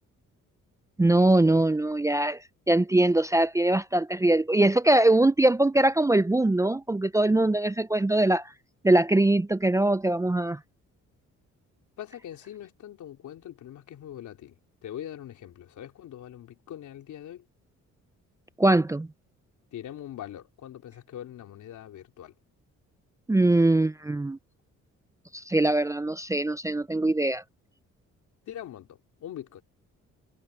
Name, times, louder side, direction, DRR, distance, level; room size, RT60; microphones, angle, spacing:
voice 1, 1.0-2.4 2.7-8.5 8.8-10.6 18.6-19.1 23.3-24.4 25.3-27.4, right 2 dB, 10° right, 0.5 m, -22 dB
voice 2, 12.0-17.5 19.7-22.3 28.5-29.6, left 11 dB, 75° left, 3.7 m, -42 dB
cardioid pair, 90°, 30 cm